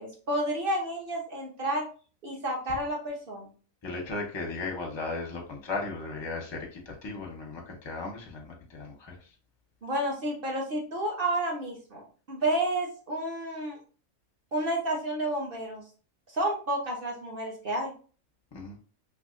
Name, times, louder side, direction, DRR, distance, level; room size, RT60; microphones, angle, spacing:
voice 1, 0.0-1.8 2.2-3.5 9.8-13.8 14.5-15.8 16.3-17.9, right 1 dB, 45° right, -1 dB, 1.0 m, -30 dB
voice 2, 3.8-9.3 18.5-18.8, left 3 dB, 25° left, 1 dB, 0.6 m, -36 dB
3.4 x 3.1 x 2.5 m, 0.39 s
omnidirectional pair, 1.5 m